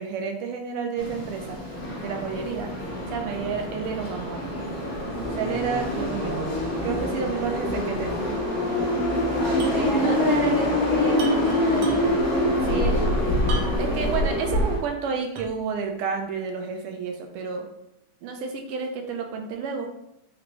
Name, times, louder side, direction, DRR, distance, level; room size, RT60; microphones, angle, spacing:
voice 1, 0.0-1.6 2.0-2.7 3.1-4.4 5.3-6.5 6.7-8.4 12.6-12.9 13.8-17.7 18.2-19.9, right 5 dB, 90° right, 3 dB, 1.5 m, -30 dB
sound 1, 1.0-14.8, left 1 dB, 45° left, 1.8 m, -25 dB
voice 2, 9.4-12.2 12.7-13.2 13.5-13.8, left 2 dB, 75° left, -5 dB, 0.8 m, -31 dB
sound 2, 9.6-9.9 10.1-10.2 11.1-12.3 13.5-14.0 14.5-14.6 15.4-15.7, right 4 dB, 70° right, 1.0 m, -38 dB
4.4 x 2.6 x 2.9 m, 0.82 s
omnidirectional pair, 2.4 m